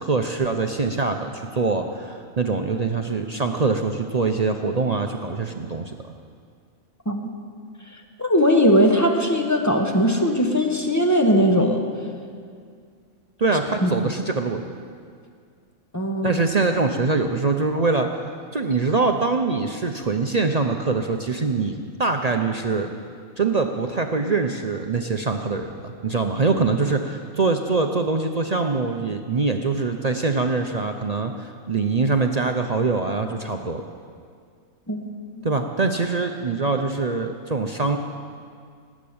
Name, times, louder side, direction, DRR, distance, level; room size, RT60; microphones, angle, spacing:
voice 1, 0.0-5.9 13.4-14.6 16.2-18.1 18.5-22.9 23.4-33.8 35.4-38.0, right 4 dB, 45° right, 5 dB, 0.5 m, -23 dB
voice 2, 8.2-11.8 13.8-13.9 15.9-16.4 34.9-35.1, equal, 15° left, 2 dB, 1.2 m, -19 dB
18.5 x 7.4 x 8.6 m, 2.2 s
omnidirectional pair, 1.4 m